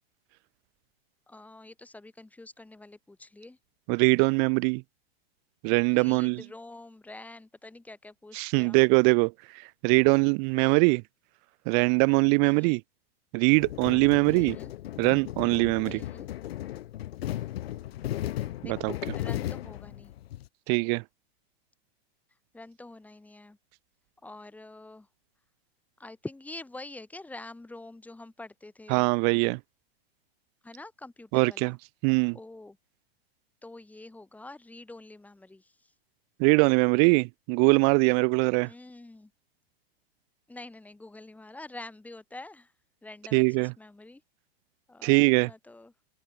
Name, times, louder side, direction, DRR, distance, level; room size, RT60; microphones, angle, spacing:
voice 1, 1.3-3.6 5.9-8.8 10.1-10.2 12.4-12.8 14.3-14.7 15.8-16.3 18.6-20.1 22.5-23.6 24.2-25.1 26.0-29.1 30.6-31.8 32.3-32.8 33.6-35.9 38.6-39.3 40.5-42.7 43.0-44.2 44.9-45.9, left 2 dB, 5° left, 7.4 m, -46 dB
voice 2, 3.9-4.8 5.6-6.4 8.3-9.3 9.8-11.0 11.6-12.8 13.3-14.5 15.0-16.0 18.6-18.9 20.7-21.0 28.9-29.6 31.3-31.7 32.0-32.4 36.4-38.7 43.3-43.7 45.0-45.5, right 40 dB or more, 40° right, 1.6 m, -22 dB
sound 1, 13.6-20.5, left 14 dB, 70° left, 1.7 m, -36 dB
hypercardioid pair, 145°, 31 cm